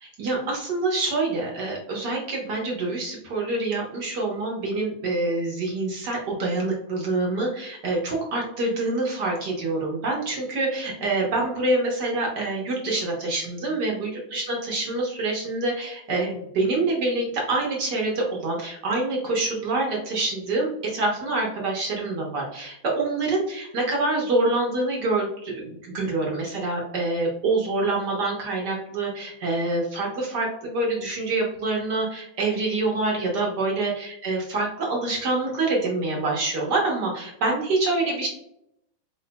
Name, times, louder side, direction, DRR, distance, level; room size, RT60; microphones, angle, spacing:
voice 1, 0.0-38.3, right 2 dB, 55° right, -1 dB, 1.6 m, -26 dB
4.4 x 4.0 x 2.2 m, 0.79 s
omnidirectional pair, 2.3 m